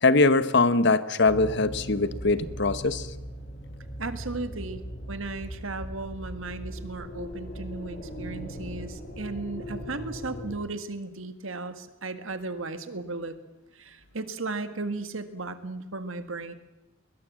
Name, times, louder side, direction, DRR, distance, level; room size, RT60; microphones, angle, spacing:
voice 1, 0.0-3.1, left 3 dB, 60° left, 14 dB, 1.0 m, -22 dB
sound 1, 1.3-10.5, equal, 45° left, 5.6 m, -39 dB
voice 2, 4.0-4.8 5.1-13.4 13.7-16.5, right 3 dB, 80° right, 9 dB, 1.8 m, -35 dB
21.0 x 20.5 x 7.6 m, 0.99 s
head